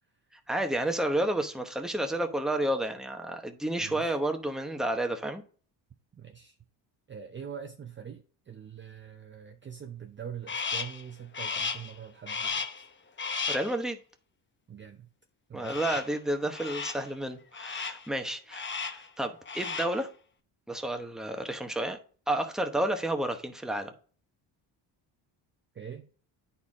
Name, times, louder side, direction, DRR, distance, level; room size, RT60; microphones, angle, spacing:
voice 1, 0.5-5.4 13.5-14.0 15.5-20.1 20.7-22.0 22.3-23.9, right 1 dB, ahead, 0.9 m, -31 dB
voice 2, 3.8-4.2 6.1-6.6 7.1-12.9 14.7-15.1 15.5-16.0 25.7-26.1, right 8 dB, 25° right, 0.6 m, -44 dB
Crow, 10.5-11.0 11.3-11.9 12.3-12.8 13.2-13.7 15.6-16.2 16.5-17.1 17.5-18.1 18.5-19.1 19.4-20.0, left 5 dB, 25° left, 0.8 m, -34 dB
9.5 x 4.3 x 3.6 m
cardioid pair, 90°, 47 cm